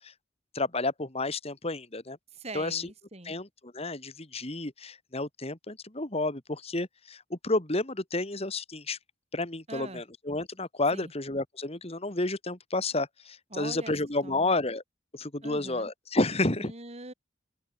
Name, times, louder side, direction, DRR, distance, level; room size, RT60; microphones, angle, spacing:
voice 1, 0.5-2.2 2.5-2.9 3.3-9.0 9.3-14.8 15.1-16.7, left 2 dB, 30° left, 2.1 m, -31 dB
voice 2, 2.3-3.4 9.7-10.0 10.9-11.1 13.5-13.9 14.2-14.5 15.4-15.9 16.6-17.1, right 2 dB, 30° right, 3.0 m, -42 dB
head